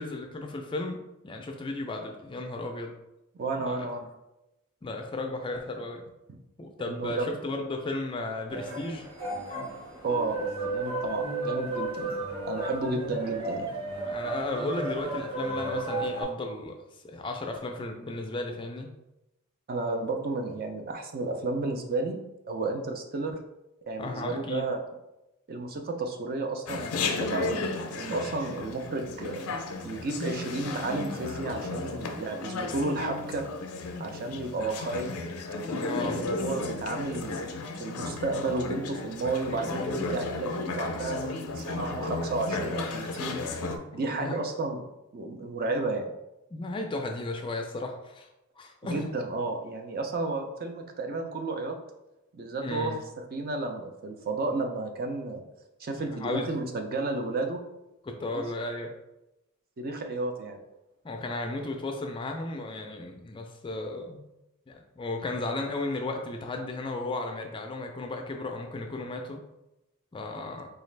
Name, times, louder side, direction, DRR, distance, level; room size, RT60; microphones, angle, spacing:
voice 1, 0.0-2.9 3.6-3.9 4.8-6.0 6.6-9.0 14.0-16.8 17.0-18.9 24.0-24.7 35.6-36.2 43.9-44.4 46.5-48.3 48.6-49.1 52.6-53.0 56.0-56.5 58.0-58.9 61.0-64.2 64.7-69.4 70.1-70.7, left 2 dB, 25° left, 3 dB, 0.3 m, -34 dB
voice 2, 3.3-4.1 6.8-7.3 10.0-12.2 12.5-13.7 19.7-22.2 22.5-23.4 23.9-24.8 25.5-27.6 27.9-29.5 29.8-33.4 34.0-35.1 35.7-37.4 37.8-43.4 43.9-44.9 45.1-46.1 48.8-51.8 52.3-55.4 55.8-57.6 58.3-58.4 59.8-60.6, right 3 dB, 45° right, 4 dB, 0.4 m, -32 dB
sound 1, 8.5-16.2, right 2 dB, 25° right, 1.3 m, -33 dB
Chatter, 26.7-43.8, left 3 dB, 85° left, 0.5 m, -34 dB
4.0 x 2.3 x 3.2 m, 0.92 s
head